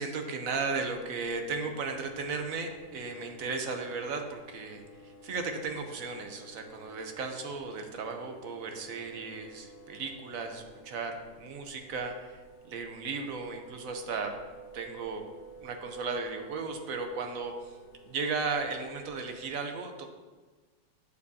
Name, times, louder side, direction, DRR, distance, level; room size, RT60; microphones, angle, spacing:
voice 1, 0.0-14.3 14.7-15.2 15.6-17.8 18.0-20.1, right 4 dB, 60° right, 5 dB, 1.2 m, -35 dB
sound 1, 0.8-19.5, right 2 dB, 90° left, 1.4 m, -52 dB
11.0 x 7.3 x 2.8 m, 1.3 s
omnidirectional pair, 1.9 m